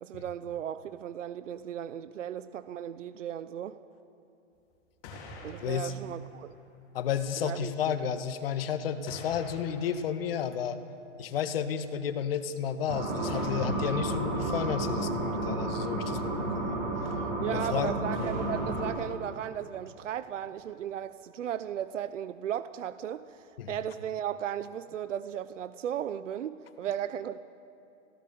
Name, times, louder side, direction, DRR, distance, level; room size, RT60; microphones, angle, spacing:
voice 1, 0.0-3.8 5.4-6.5 7.4-7.7 17.4-27.4, right 10 dB, 65° right, 13 dB, 1.0 m, -36 dB
sound 1, 4.5-4.8 5.0-7.2 8.2-8.3 9.1-11.2 13.3-14.9 18.1-19.7, left 2 dB, 30° left, 4.8 m, -46 dB
voice 2, 5.6-5.9 6.9-10.8 11.2-16.8 17.5-17.9 23.6-23.8, left 8 dB, 45° left, 9 dB, 1.6 m, -32 dB
sound 2, 12.9-18.9, right 2 dB, 40° right, 6.2 m, -31 dB
29.5 x 17.0 x 7.0 m, 2.9 s
hypercardioid pair, 160°, 39 cm